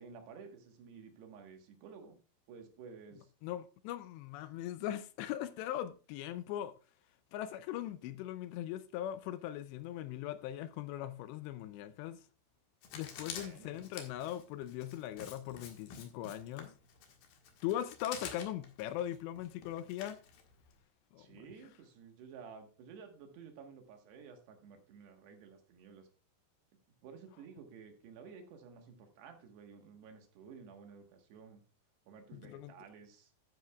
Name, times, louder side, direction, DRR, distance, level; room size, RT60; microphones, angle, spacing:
voice 1, 0.0-2.2 2.5-3.3 13.2-13.8 21.2-26.1 27.0-31.6 32.1-33.3, right 6 dB, 70° right, 3.3 m, -53 dB
voice 2, 3.4-6.7 7.3-12.2 12.9-16.8 17.6-20.2 21.1-21.3 32.3-32.7, left 12 dB, 85° left, 2.7 m, -40 dB
Writing, 12.8-20.8, left 7 dB, 60° left, 3.0 m, -49 dB
12.5 x 9.3 x 2.3 m
omnidirectional pair, 5.2 m